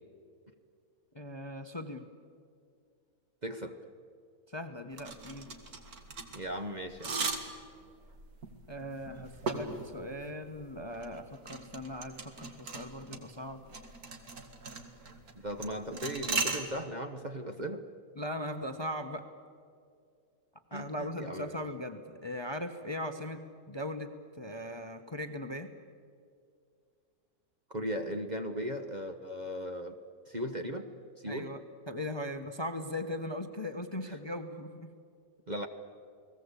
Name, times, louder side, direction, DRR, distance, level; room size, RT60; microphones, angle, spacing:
voice 1, 1.1-2.1 4.5-5.6 8.7-13.6 18.2-19.3 20.7-25.7 31.3-34.9, left 1 dB, 20° left, 7 dB, 1.0 m, -39 dB
voice 2, 3.4-3.8 6.3-7.2 15.3-17.8 20.7-21.6 27.7-30.0 30.3-30.9 31.2-31.5 35.5-35.7, equal, 30° right, 6 dB, 1.2 m, -37 dB
sound 1, 4.9-16.6, right 3 dB, 70° right, 2.5 m, -38 dB
30.0 x 19.5 x 8.3 m, 2.3 s
omnidirectional pair, 1.6 m